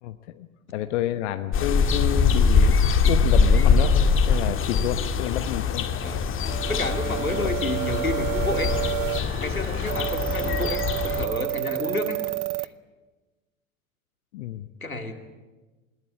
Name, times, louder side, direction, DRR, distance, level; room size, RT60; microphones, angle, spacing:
voice 1, 0.0-2.8 3.0-5.9 7.4-7.5 14.3-14.7, left 13 dB, 55° left, 9 dB, 1.1 m, -29 dB
sound 1, 1.5-11.2, left 5 dB, 30° left, 1.9 m, -22 dB
sound 2, 6.5-12.7, right 21 dB, 45° right, 0.8 m, -30 dB
voice 2, 6.7-8.7 9.4-12.2 12.6-12.7 14.8-15.1, left 2 dB, 90° left, 6 dB, 2.4 m, -30 dB
21.0 x 19.0 x 9.5 m, 1.2 s
figure-of-eight pair, 80°, 41 cm